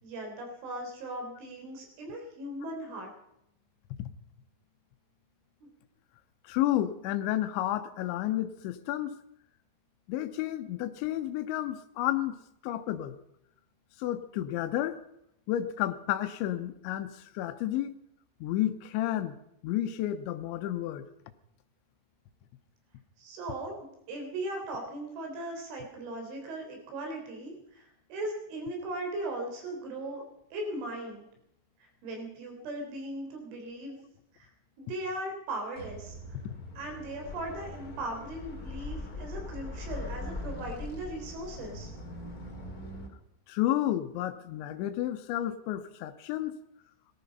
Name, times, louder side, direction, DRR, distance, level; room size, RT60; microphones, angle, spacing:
voice 1, 0.0-3.1 5.6-5.7 23.2-30.2 30.5-31.3 31.8-34.0 34.3-34.5 34.8-36.4 36.8-41.9, right 1 dB, 85° right, 2 dB, 6.3 m, -38 dB
voice 2, 6.4-9.2 10.1-12.4 12.6-13.2 14.0-15.0 15.5-17.9 18.4-19.4 19.6-21.0 36.4-36.5 43.5-46.6, left 13 dB, 85° left, 9 dB, 3.2 m, -31 dB
sound 1, 35.7-43.1, left 2 dB, 40° left, 1.4 m, -41 dB
18.5 x 14.0 x 5.4 m, 0.77 s
omnidirectional pair, 5.4 m